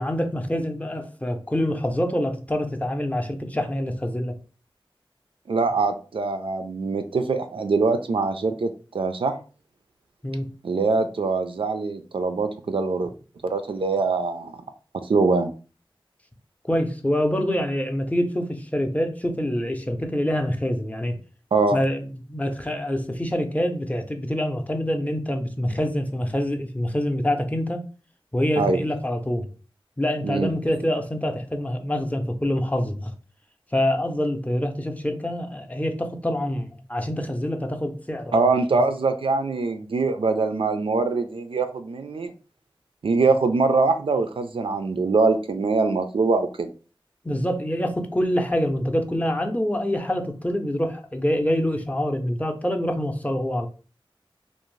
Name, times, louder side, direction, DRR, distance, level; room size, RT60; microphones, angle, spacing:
voice 1, 0.0-4.4 10.2-10.5 16.7-21.2 21.7-27.8 28.3-29.5 30.0-33.1 33.7-38.5 47.2-53.7, equal, 15° left, 0.5 m, -26 dB
voice 2, 5.5-9.4 10.6-13.1 13.4-14.6 15.1-15.5 21.5-21.8 28.6-28.8 30.2-30.5 38.3-42.3 43.0-46.7, right 3 dB, 70° right, 0.3 m, -23 dB
2.5 x 2.0 x 3.0 m
wide cardioid pair, 40°, 9 cm